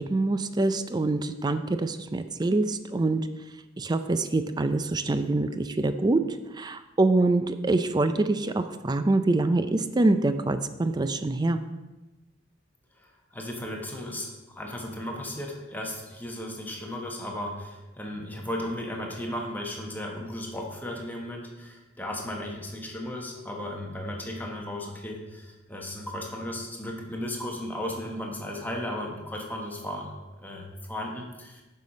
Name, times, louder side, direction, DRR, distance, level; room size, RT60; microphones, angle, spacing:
voice 1, 0.0-3.2 3.8-6.2 6.6-11.6, right 2 dB, 20° right, 10 dB, 0.4 m, -25 dB
voice 2, 13.0-30.1 30.4-31.6, left 1 dB, 10° left, 0 dB, 1.2 m, -35 dB
7.5 x 5.7 x 5.1 m, 1.1 s
head